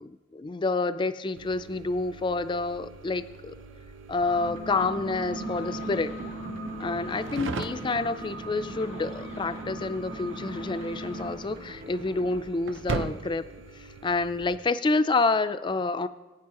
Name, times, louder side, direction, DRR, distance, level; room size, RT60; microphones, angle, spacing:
voice 1, 0.0-3.5 4.1-6.1 6.8-13.4 13.7-16.1, left 3 dB, 25° left, 12 dB, 0.3 m, -28 dB
sound 1, 1.4-14.6, right 3 dB, 65° right, 0.6 m, -41 dB
sound 2, 4.1-11.3, right 1 dB, 85° right, 2.5 m, -38 dB
sound 3, 4.4-12.4, equal, 50° right, 2.1 m, -46 dB
19.0 x 8.9 x 2.9 m, 1.2 s
head